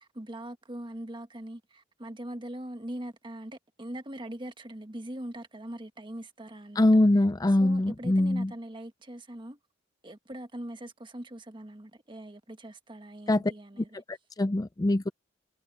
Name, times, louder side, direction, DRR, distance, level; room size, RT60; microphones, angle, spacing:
voice 1, 0.0-7.0 7.6-9.6 10.0-14.0, right 1 dB, 25° right, 1.5 m, -41 dB
voice 2, 6.8-8.5 13.3-13.5 13.8-15.1, left 1 dB, 20° left, 0.4 m, -24 dB
head